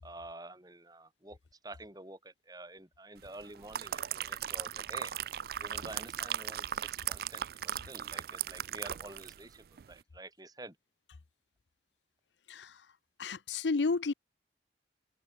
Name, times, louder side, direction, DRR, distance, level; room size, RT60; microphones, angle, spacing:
voice 1, 0.0-1.4 1.6-5.1 5.6-10.8, right 2 dB, 20° right, 6.1 m, -49 dB
sound 1, 3.4-9.4 9.8-9.9, right 10 dB, 55° right, 0.3 m, -38 dB
voice 2, 13.2-14.1, left 4 dB, 85° left, 0.6 m, -31 dB
head